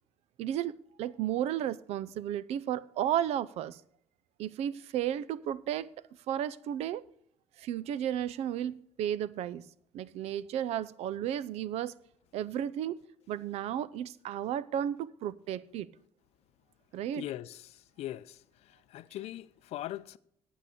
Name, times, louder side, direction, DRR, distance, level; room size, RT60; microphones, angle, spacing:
voice 1, 0.4-3.8 4.4-5.9 6.3-7.0 7.6-9.6 9.9-12.0 12.3-13.0 13.3-15.9 16.9-17.3, right 10 dB, 80° right, 0.6 m, -33 dB
voice 2, 17.2-18.4 18.9-20.2, left 14 dB, 75° left, 0.5 m, -40 dB
8.6 x 8.4 x 6.6 m
cardioid pair, 125°, 11 cm